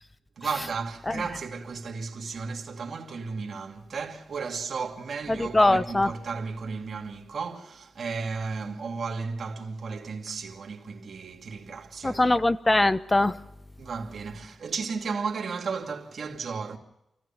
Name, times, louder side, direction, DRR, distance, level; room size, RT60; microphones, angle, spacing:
voice 1, 0.4-12.3 13.8-16.8, right 5 dB, 60° right, 2.7 m, -34 dB
voice 2, 5.3-6.1 12.0-13.3, left 2 dB, 20° left, 0.9 m, -22 dB
28.5 x 16.0 x 5.9 m
cardioid pair, 100°, 0 cm